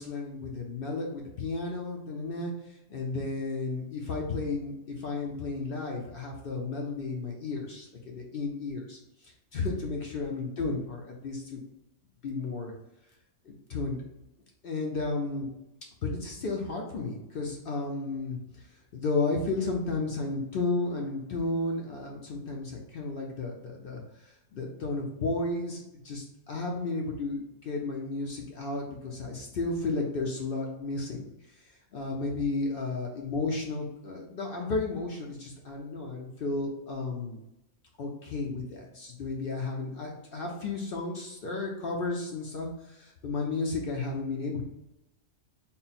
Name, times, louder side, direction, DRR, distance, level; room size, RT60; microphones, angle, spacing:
voice 1, 0.0-11.6 12.2-12.7 13.5-14.0 14.6-15.5 16.0-18.7 18.9-31.2 31.9-37.4 38.0-44.7, left 3 dB, 60° left, 0 dB, 0.7 m, -33 dB
3.6 x 2.1 x 4.1 m, 0.89 s
omnidirectional pair, 1.3 m